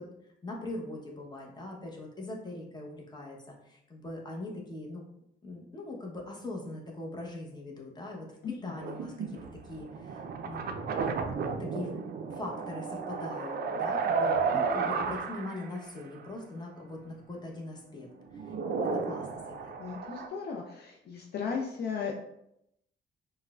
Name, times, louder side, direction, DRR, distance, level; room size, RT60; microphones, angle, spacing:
voice 1, 0.4-5.0 5.4-9.4 9.6-11.1 11.6-18.1 18.3-18.5 18.8-19.7, left 2 dB, 20° left, -1 dB, 0.9 m, -41 dB
voice 2, 8.4-8.7 19.8-22.3, left 5 dB, 55° left, 0 dB, 0.5 m, -36 dB
sound 1, 8.8-15.8 16.2-16.3 18.1-20.3, right 5 dB, 50° right, 0.4 m, -33 dB
4.5 x 2.1 x 2.3 m, 0.79 s
cardioid pair, 90°, 20 cm